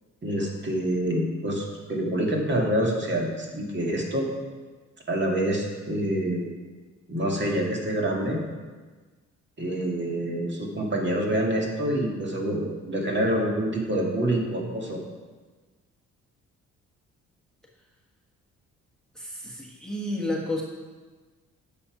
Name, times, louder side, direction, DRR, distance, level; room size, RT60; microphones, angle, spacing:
voice 1, 0.2-4.3 5.1-6.4 7.1-8.4 9.6-15.0, right 1 dB, 35° right, 0 dB, 2.0 m, -26 dB
voice 2, 19.1-20.6, left 1 dB, ahead, -1 dB, 1.3 m, -31 dB
10.0 x 6.7 x 4.8 m, 1.4 s
cardioid pair, 90°, 30 cm